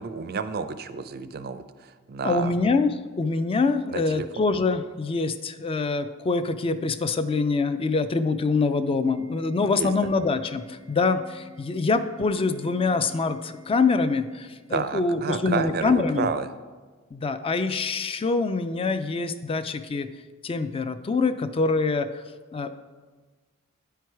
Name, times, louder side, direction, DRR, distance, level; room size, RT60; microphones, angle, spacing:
voice 1, 0.0-2.6 3.9-4.3 9.8-9.9 14.7-16.5, right 5 dB, 45° right, 11 dB, 0.4 m, -30 dB
voice 2, 2.2-16.3 17.1-20.1 20.4-22.1 22.5-22.7, left 4 dB, 25° left, 11 dB, 0.3 m, -25 dB
Organ, 9.1-15.1, left 3 dB, 60° left, 1.3 m, -48 dB
10.0 x 4.6 x 4.6 m, 1.4 s
head